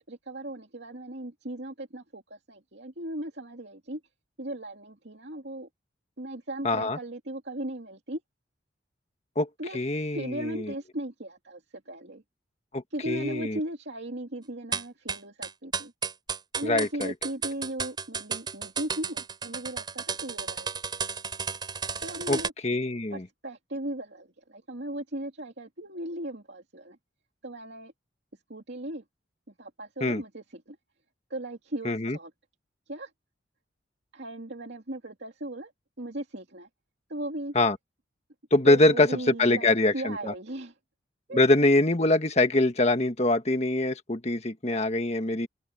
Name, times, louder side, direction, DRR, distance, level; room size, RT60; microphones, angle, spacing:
voice 1, 0.0-4.0 4.4-5.7 6.2-8.2 9.6-9.8 10.1-12.2 12.9-15.9 16.6-20.8 22.0-22.5 23.1-27.0 27.4-27.9 28.5-29.0 29.5-30.8 31.3-32.3 32.9-33.1 34.1-35.7 36.0-36.7 37.1-37.5 38.7-40.8 41.3-41.4, right 1 dB, 65° right, 2.5 m, -37 dB
voice 2, 6.6-7.0 9.3-9.5 9.7-10.7 12.7-13.6 16.6-17.1 22.3-22.4 22.6-23.2 30.0-30.2 31.8-32.2 37.5-37.8 38.5-40.3 41.3-45.5, left 2 dB, 35° left, 1.6 m, -24 dB
sound 1, 14.7-22.5, right 5 dB, 25° right, 4.7 m, -33 dB
open air
head